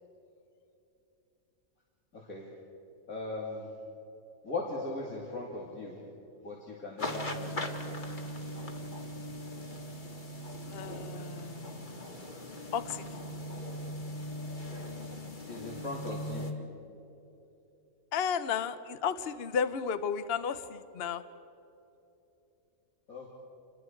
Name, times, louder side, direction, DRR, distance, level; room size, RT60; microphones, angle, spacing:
voice 1, 2.1-2.5 3.1-3.7 4.4-6.0 6.4-7.7 15.5-16.5 23.1-23.3, left 2 dB, 75° left, -4 dB, 3.3 m, -38 dB
sound 1, 7.0-16.5, equal, 35° left, 1.8 m, -39 dB
voice 2, 10.7-12.0 12.7-13.2 18.1-21.2, left 7 dB, 50° left, 12 dB, 0.9 m, -33 dB
28.5 x 21.5 x 4.6 m, 3.0 s
omnidirectional pair, 1.5 m